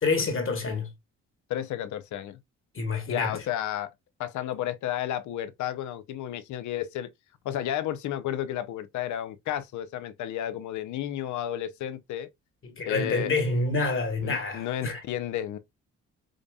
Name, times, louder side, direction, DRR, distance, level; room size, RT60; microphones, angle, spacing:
voice 1, 0.0-0.9 2.7-3.4 12.8-15.0, left 3 dB, 45° left, 1.3 m, -27 dB
voice 2, 1.5-2.4 3.1-3.9 4.2-7.1 7.4-12.3 12.9-13.3 14.2-15.6, left 11 dB, 75° left, 0.6 m, -32 dB
5.0 x 2.6 x 2.2 m
cardioid pair, 90°, 30 cm